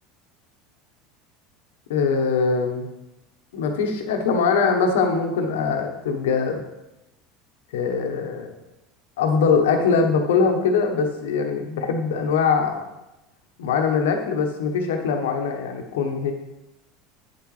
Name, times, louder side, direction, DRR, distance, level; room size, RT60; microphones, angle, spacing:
voice 1, 1.9-2.9 3.5-6.6 7.7-8.5 9.2-12.8 13.6-16.3, left 5 dB, 80° left, 4 dB, 1.1 m, -22 dB
8.5 x 7.0 x 3.2 m, 0.96 s
hypercardioid pair, 90°, 0 cm